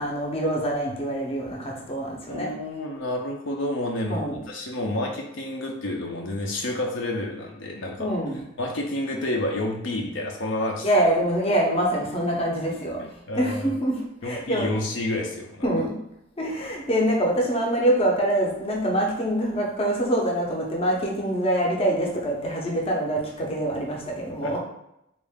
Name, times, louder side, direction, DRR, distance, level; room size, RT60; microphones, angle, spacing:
voice 1, 0.0-2.5 4.1-4.4 8.0-8.4 10.8-13.0 13.3-14.7 15.6-15.9 16.4-24.6, right 1 dB, 30° left, -1 dB, 0.6 m, -25 dB
voice 2, 2.3-8.1 8.6-10.9 13.0-13.7 14.2-15.7 24.4-24.5, left 1 dB, 65° left, 1 dB, 0.6 m, -29 dB
3.6 x 2.4 x 3.5 m, 0.83 s
head